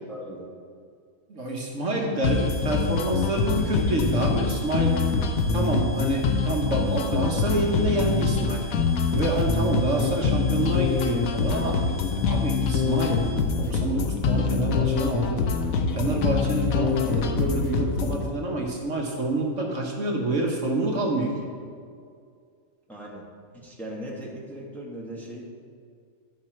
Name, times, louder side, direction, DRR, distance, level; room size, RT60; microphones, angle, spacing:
voice 1, 0.1-0.5 22.9-23.3 23.5-25.4, right 1 dB, ahead, -3 dB, 1.4 m, -38 dB
voice 2, 1.3-5.0 5.5-8.6 9.1-11.8 12.3-13.2 13.6-15.4 15.9-21.4, right 2 dB, 60° right, -1 dB, 1.5 m, -27 dB
sound 1, 2.2-18.2, left 4 dB, 75° left, 1.1 m, -25 dB
sound 2, 2.2-13.6, left 1 dB, 40° right, 1.7 m, -45 dB
12.5 x 5.9 x 4.4 m, 2.2 s
omnidirectional pair, 1.5 m